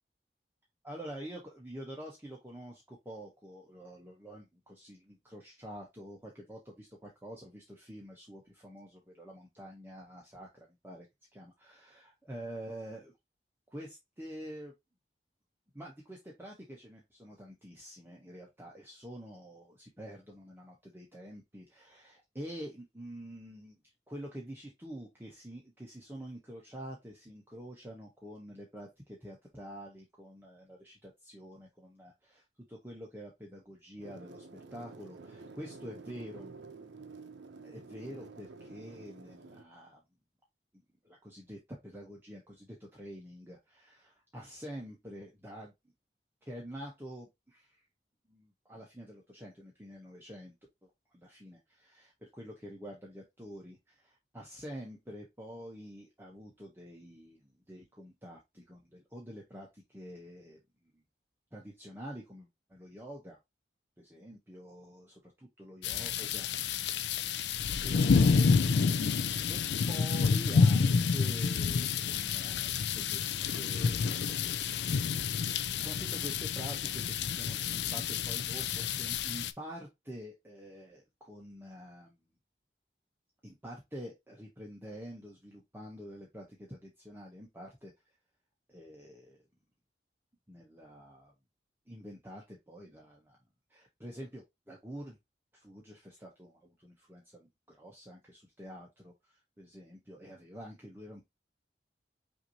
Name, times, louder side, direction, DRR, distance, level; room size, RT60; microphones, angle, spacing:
voice 1, 0.8-11.1 11.3-13.1 13.7-14.7 15.7-23.7 24.1-34.4 34.7-36.5 37.6-40.0 41.0-45.7 46.4-47.8 48.3-50.5 50.8-60.6 61.5-63.4 64.0-67.3 67.8-69.2 69.5-74.2 75.8-82.2 83.4-87.9 88.7-89.4 90.5-91.3 91.9-93.4 93.7-95.2 95.5-101.2, equal, 10° right, -2 dB, 0.9 m, -47 dB
sound 1, 34.0-39.6, right 4 dB, 90° right, 0.6 m, -49 dB
sound 2, 65.8-79.5, left 5 dB, 75° left, 0.4 m, -29 dB
5.8 x 2.7 x 2.8 m, 0.19 s
head